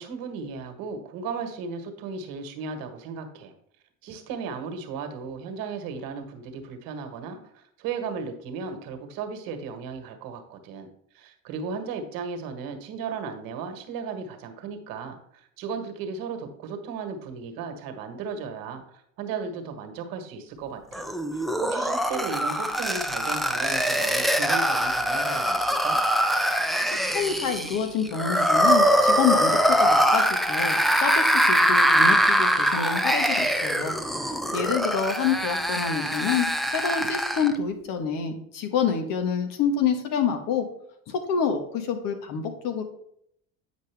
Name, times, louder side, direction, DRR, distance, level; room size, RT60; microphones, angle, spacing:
voice 1, 0.0-3.5 4.0-10.9 11.1-18.8 19.2-26.0, right 5 dB, 65° right, 6 dB, 1.4 m, -35 dB
sound 1, 20.9-37.6, equal, ahead, 0.5 m, -23 dB
voice 2, 27.1-33.9 34.2-40.6 41.1-42.8, left 6 dB, 60° left, 6 dB, 1.4 m, -27 dB
9.0 x 5.2 x 3.4 m, 0.70 s
hypercardioid pair, 75°, 38 cm